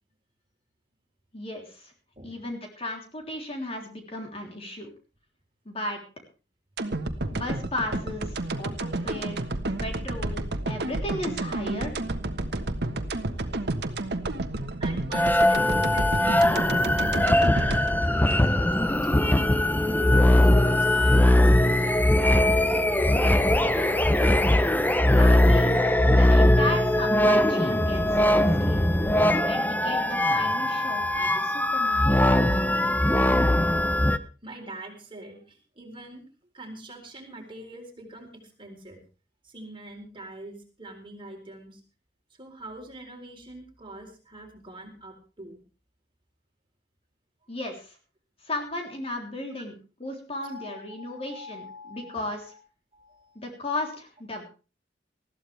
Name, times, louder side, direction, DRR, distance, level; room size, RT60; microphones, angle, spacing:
voice 1, 1.3-1.9 2.2-4.9 5.6-6.0 7.2-9.4 9.8-10.4 10.7-12.0 25.1-25.7 26.1-28.0 28.3-28.9 29.5-32.2 47.5-48.0 48.4-49.7 50.0-52.5 53.3-54.4, left 1 dB, 35° left, 2 dB, 3.4 m, -35 dB
sound 1, 6.8-19.0 19.4-19.5, right 2 dB, 65° right, 1.3 m, -31 dB
voice 2, 14.8-19.4 20.1-22.8 23.1-23.6 34.4-36.2 36.5-39.0 39.4-41.8 42.4-45.6 47.4-47.5 50.4-52.6 52.9-53.4, right 1 dB, 30° right, 2 dB, 4.0 m, -44 dB
sound 2, 15.1-34.2, left 1 dB, 10° left, 0.7 m, -21 dB
20.0 x 14.5 x 3.4 m, 0.35 s
head